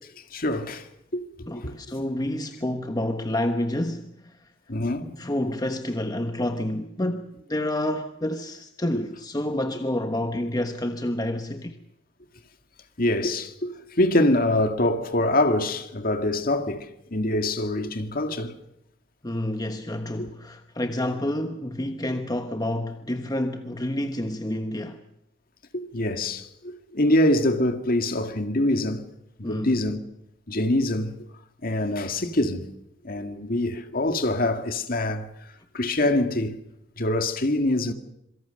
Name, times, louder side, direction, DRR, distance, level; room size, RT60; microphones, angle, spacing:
voice 1, 0.3-0.9 1.1-1.8 4.7-5.2 13.0-18.5 20.2-20.3 25.7-29.1 29.4-30.0 30.5-31.2 31.6-32.7 33.0-35.3 35.7-36.6 37.0-37.9, left 1 dB, 50° left, 2.1 m, -24 dB
voice 2, 1.5-4.5 5.2-11.8 19.2-25.0 29.4-29.8, left 1 dB, 20° left, 1.2 m, -29 dB
27.0 x 23.5 x 6.6 m
head